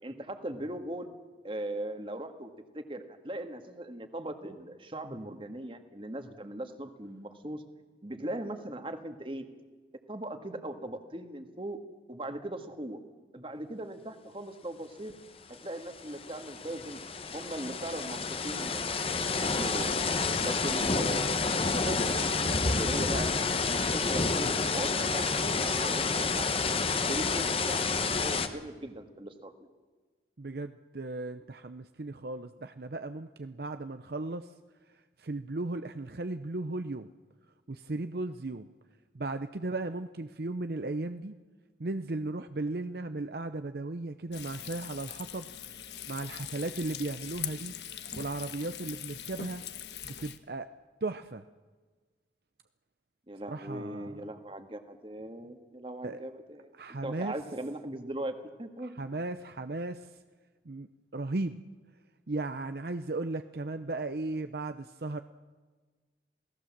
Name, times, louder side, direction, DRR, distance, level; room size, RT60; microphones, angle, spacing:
voice 1, 0.0-1.1 1.4-2.5 2.7-7.6 8.0-9.4 10.1-11.8 12.1-13.0 13.3-15.1 15.6-17.0 17.3-19.9 20.4-23.3 23.6-26.5 26.9-27.9 28.2-29.5 53.3-58.9, right 1 dB, 30° right, 7 dB, 1.8 m, -39 dB
sound 1, 15.5-15.6 15.9-28.5, left 4 dB, 30° left, 1.2 m, -29 dB
voice 2, 30.4-34.5 35.2-37.1 37.7-38.7 39.1-41.3 41.8-45.5 46.1-47.8 48.1-49.6 50.0-50.7 51.0-51.4 53.5-54.1 56.0-56.2 56.8-57.3 58.8-60.1 60.7-61.6 62.3-65.2, right 2 dB, 60° right, 10 dB, 0.7 m, -36 dB
Frying (food), 44.3-50.4, left 10 dB, 70° left, 1.4 m, -42 dB
28.0 x 18.0 x 7.4 m, 1.4 s
head